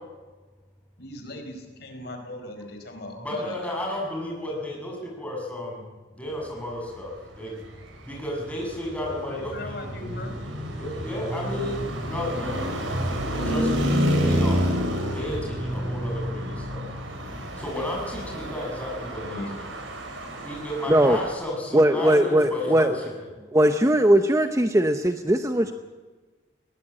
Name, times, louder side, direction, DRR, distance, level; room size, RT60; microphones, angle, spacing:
voice 1, 1.0-3.8 9.2-10.3 19.2-19.5, left 1 dB, 55° left, 4 dB, 4.7 m, -38 dB
voice 2, 3.2-5.8 6.2-7.6 8.0-9.9 10.7-13.9 14.2-14.6 15.1-16.9 17.6-19.4 20.4-23.1, left 1 dB, 5° left, -2 dB, 6.9 m, -33 dB
Traffic noise roadway noise, 7.6-21.3, equal, 90° right, 4.7 m, -29 dB
voice 3, 21.7-23.0 23.5-25.7, right 1 dB, 15° right, 7 dB, 0.8 m, -19 dB
21.0 x 18.0 x 8.8 m, 1.3 s
head